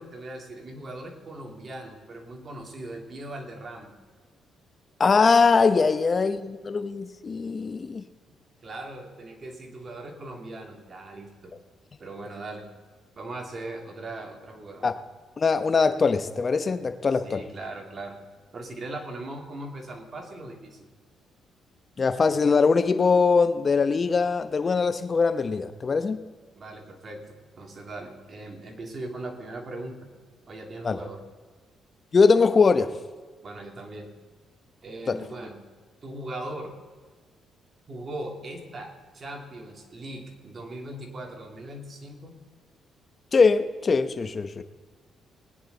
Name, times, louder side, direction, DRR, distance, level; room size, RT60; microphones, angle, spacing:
voice 1, 0.0-3.9 8.6-11.5 12.0-12.7 13.2-14.9 17.1-18.2 18.5-20.9 26.6-30.0 30.5-31.2 33.4-34.1 34.8-35.6 36.0-36.7 37.9-42.4, right 2 dB, 40° right, 2.6 m, -39 dB
voice 2, 5.0-8.0 14.8-14.9 15.4-17.4 22.0-26.2 30.8-31.0 32.1-32.9 35.1-35.2 43.3-44.6, left 4 dB, 35° left, 1.0 m, -22 dB
20.0 x 10.0 x 4.0 m
cardioid pair, 90°, 0 cm